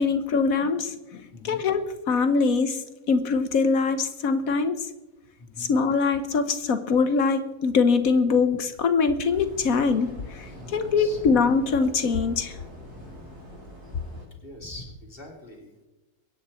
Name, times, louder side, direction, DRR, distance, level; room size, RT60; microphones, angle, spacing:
voice 1, 0.0-4.9 5.6-12.6, left 4 dB, 70° left, 10 dB, 1.4 m, -23 dB
voice 2, 5.4-5.7 10.5-11.4 12.9-13.2 14.3-15.9, left 1 dB, 35° left, 0 dB, 3.3 m, -43 dB
sound 1, 9.2-14.3, equal, 85° right, 6.4 m, -44 dB
23.0 x 10.0 x 4.2 m, 1.0 s
omnidirectional pair, 1.6 m